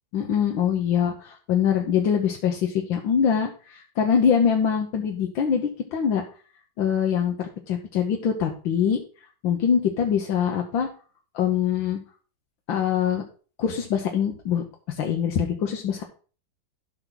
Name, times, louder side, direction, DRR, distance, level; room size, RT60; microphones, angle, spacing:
voice 1, 0.1-6.2 6.8-9.0 9.4-10.9 11.3-12.0 12.7-13.2 13.6-16.0, left 8 dB, 90° left, 2 dB, 1.8 m, -24 dB
12.5 x 6.1 x 3.9 m, 0.39 s
omnidirectional pair, 2.0 m